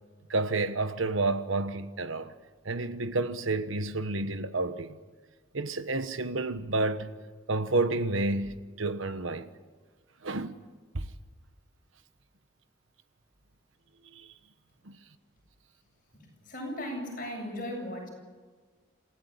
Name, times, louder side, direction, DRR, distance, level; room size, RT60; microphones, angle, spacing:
voice 1, 0.3-2.3 2.6-5.0 5.5-7.1 7.5-9.5 10.2-10.7 10.9-11.1 14.1-14.3 14.9-15.0, right 2 dB, 80° right, 1.3 m, -30 dB
voice 2, 16.5-18.1, left 1 dB, 45° left, 8.0 m, -36 dB
27.5 x 16.5 x 8.9 m
head